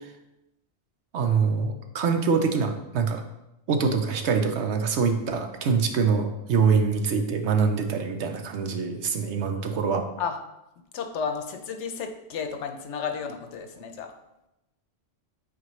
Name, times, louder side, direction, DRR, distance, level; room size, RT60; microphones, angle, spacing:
voice 1, 1.1-3.2 3.7-10.1, right 5 dB, 70° right, 6 dB, 1.0 m, -24 dB
voice 2, 10.9-14.1, left 6 dB, 75° left, 7 dB, 1.0 m, -32 dB
8.5 x 4.5 x 3.1 m, 0.91 s
omnidirectional pair, 1.2 m